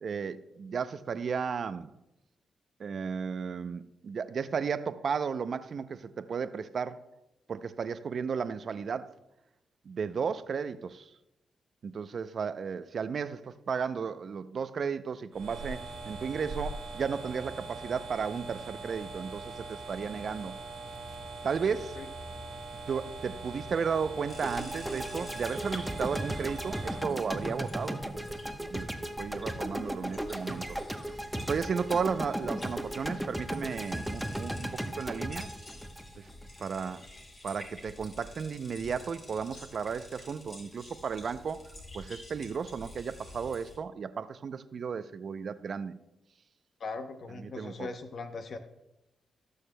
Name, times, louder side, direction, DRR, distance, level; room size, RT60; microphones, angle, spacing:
voice 1, 0.0-1.9 2.8-7.0 7.5-9.1 9.9-11.1 11.8-20.5 21.4-22.0 22.9-28.1 28.6-28.9 29.2-30.7 31.5-34.7 35.0-35.5 36.2-36.3 36.6-37.0 37.4-41.6 41.9-46.0 47.4-47.9, right 6 dB, 60° right, 13 dB, 0.5 m, -34 dB
sound 1, 15.3-27.0, right 3 dB, 90° right, 1.9 m, -42 dB
sound 2, 24.3-43.8, left 1 dB, 45° left, 3.0 m, -50 dB
sound 3, 24.4-36.6, equal, ahead, 0.9 m, -36 dB
voice 2, 46.8-48.6, left 4 dB, 65° left, 8 dB, 0.7 m, -39 dB
18.0 x 6.5 x 2.2 m, 0.89 s
supercardioid pair, 50°, 0 cm